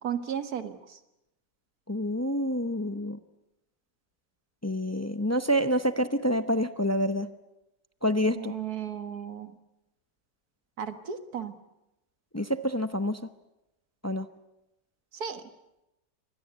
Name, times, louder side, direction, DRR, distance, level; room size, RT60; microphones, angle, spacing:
voice 1, 0.0-0.7 8.4-9.5 10.8-11.5 15.2-15.4, right 8 dB, 60° right, 9 dB, 2.0 m, -34 dB
voice 2, 1.9-3.2 4.6-7.3 8.0-8.5 12.3-13.2 14.0-14.3, equal, 20° left, 10 dB, 0.4 m, -27 dB
25.5 x 20.0 x 8.2 m, 0.91 s
omnidirectional pair, 1.8 m